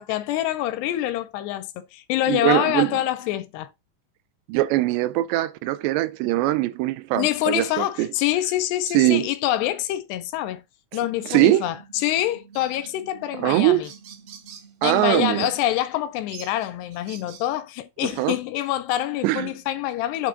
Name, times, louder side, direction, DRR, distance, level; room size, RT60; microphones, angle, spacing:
voice 1, 0.0-3.7 7.1-10.6 10.9-13.9 14.8-20.3, left 13 dB, 80° left, 2.6 m, -26 dB
voice 2, 2.3-3.0 4.5-8.1 8.9-9.3 11.3-11.6 13.4-13.8 14.8-15.5 18.0-18.4 19.2-19.5, right 16 dB, 80° right, 2.8 m, -21 dB
sound 1, 11.1-15.0, right 5 dB, 40° right, 0.7 m, -50 dB
sound 2, 12.5-12.8 13.5-13.6 13.7-14.7 15.4-15.6 16.3-17.5, right 8 dB, 65° right, 2.3 m, -45 dB
8.6 x 3.5 x 5.1 m
omnidirectional pair, 5.1 m